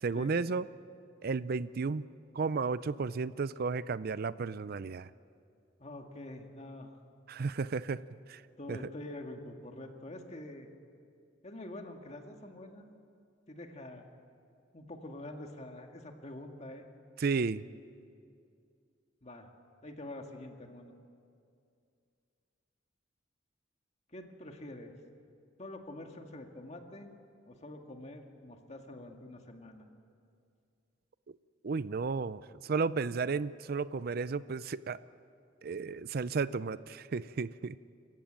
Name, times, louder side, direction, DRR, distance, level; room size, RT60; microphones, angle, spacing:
voice 1, 0.0-0.7 1.2-2.1 2.3-5.1 7.3-8.0 8.3-8.4 8.7-8.8 17.2-17.6 31.6-35.0 35.6-38.0, right 4 dB, 55° right, 16 dB, 0.5 m, -33 dB
voice 2, 5.8-7.0 8.6-10.7 11.4-12.9 13.5-14.0 14.7-16.9 19.2-19.5 19.8-20.9 24.1-24.9 25.6-27.1 27.5-29.8, left 1 dB, 35° left, 4 dB, 2.0 m, -46 dB
28.5 x 15.0 x 9.0 m, 2.4 s
head